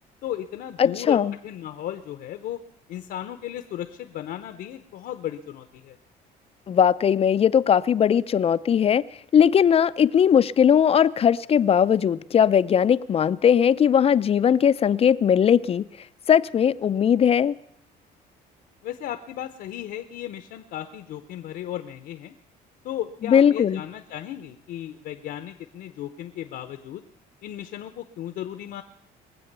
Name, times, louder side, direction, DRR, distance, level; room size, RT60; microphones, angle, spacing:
voice 1, 0.2-2.6 2.9-6.0 18.8-22.3 22.8-27.0 27.4-28.8, left 11 dB, 70° left, 0.9 m, -35 dB
voice 2, 0.8-1.3 6.7-9.0 9.3-15.9 16.3-17.5 23.2-23.8, left 8 dB, 35° left, 0.5 m, -19 dB
21.5 x 7.8 x 6.7 m
cardioid pair, 110°, 17 cm